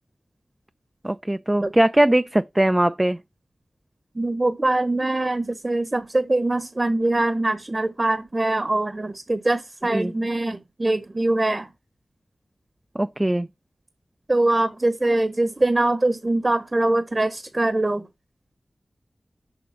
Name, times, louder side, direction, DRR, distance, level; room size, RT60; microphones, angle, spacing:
voice 1, 1.0-3.2 9.9-10.1 12.9-13.5, right 1 dB, 20° right, 0.5 m, -20 dB
voice 2, 4.1-11.7 14.3-18.0, right 2 dB, 40° right, 1.1 m, -23 dB
6.9 x 5.2 x 5.8 m
cardioid pair, 45°, 0 cm